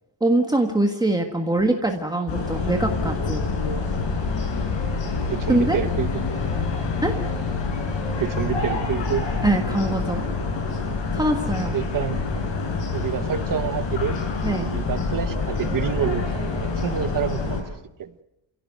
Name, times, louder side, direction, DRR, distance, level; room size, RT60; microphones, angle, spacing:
voice 1, 0.2-3.4 5.5-5.8 7.0-7.1 9.4-10.2 11.1-11.7 14.4-14.7, right 1 dB, 10° right, 3 dB, 1.6 m, -23 dB
sound 1, 2.3-17.6, left 4 dB, 70° left, 6.7 m, -26 dB
voice 2, 5.2-6.2 8.2-9.3 10.1-10.3 11.7-12.2 12.9-14.2 14.5-17.6 18.0-18.1, right 9 dB, 45° right, 12 dB, 1.2 m, -28 dB
29.0 x 16.5 x 9.3 m, 0.90 s
cardioid pair, 160°, 45 cm